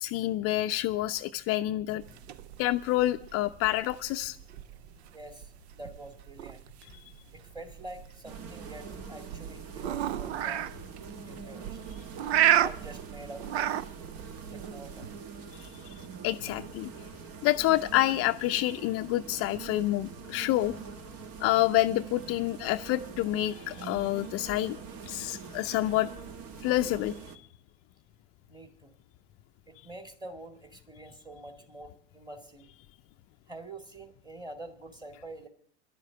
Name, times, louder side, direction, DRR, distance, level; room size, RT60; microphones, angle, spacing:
voice 1, 0.0-2.0 2.6-4.4 16.2-16.9 17.4-20.7 21.4-24.8 25.1-26.1 26.6-27.1, left 15 dB, 45° left, 8 dB, 0.5 m, -28 dB
sound 1, 2.0-15.2, right 12 dB, 75° right, 0.6 m, -33 dB
voice 2, 5.1-6.6 7.3-10.7 11.3-11.8 12.5-13.5 14.5-15.1 28.5-29.0 29.7-32.7 33.5-35.5, right 1 dB, 15° right, 5 dB, 2.1 m, -46 dB
sound 2, 8.2-27.4, right 5 dB, 45° right, 1.4 m, -44 dB
11.0 x 7.4 x 9.8 m, 0.66 s
hypercardioid pair, 85°, 33 cm